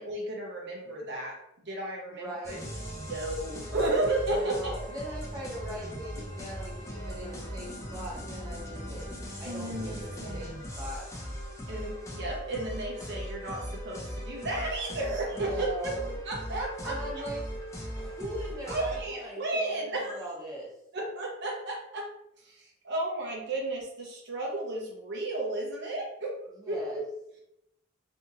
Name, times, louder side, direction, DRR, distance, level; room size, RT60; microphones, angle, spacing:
voice 1, 0.0-1.4 1.6-2.6 3.0-4.7 9.4-10.6 11.7-16.0 16.3-17.3 18.7-20.2 20.9-22.1 22.4-26.4 26.7-27.1, right 2 dB, 55° right, -2 dB, 0.7 m, -33 dB
voice 2, 2.2-2.7 4.3-9.1 9.4-11.1 15.3-16.1 16.8-17.4 18.0-20.7 26.6-27.0, right 1 dB, 15° right, -5 dB, 0.7 m, -40 dB
sound 1, 2.4-19.1, equal, 15° left, 0.5 m, -39 dB
2.8 x 2.7 x 2.5 m, 0.80 s
head